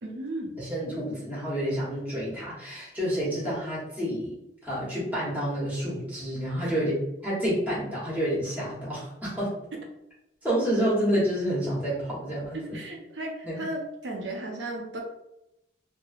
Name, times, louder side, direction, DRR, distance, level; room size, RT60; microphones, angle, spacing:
voice 1, 0.0-0.5 6.6-6.7 9.7-9.8 12.5-15.0, right 1 dB, 75° right, 1 dB, 0.6 m, -35 dB
voice 2, 0.6-4.3 4.6-9.5 10.4-12.8 13.4-13.6, equal, 10° right, -7 dB, 1.0 m, -29 dB
3.0 x 2.1 x 2.4 m, 0.85 s
head